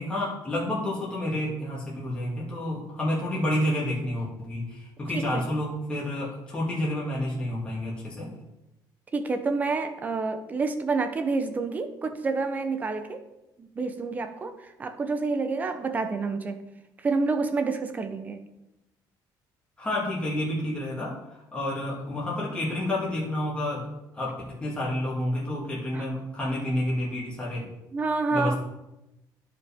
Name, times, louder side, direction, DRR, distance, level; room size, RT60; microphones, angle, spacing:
voice 1, 0.0-8.3 19.8-23.9 24.1-27.7 28.3-28.6, left 1 dB, 15° left, -6 dB, 2.0 m, -29 dB
voice 2, 9.1-13.2 13.6-16.6 17.0-18.4 25.9-26.0 27.9-28.6, right 3 dB, 20° right, 8 dB, 0.7 m, -28 dB
14.0 x 5.0 x 3.5 m, 0.93 s
cardioid pair, 175°, 8 cm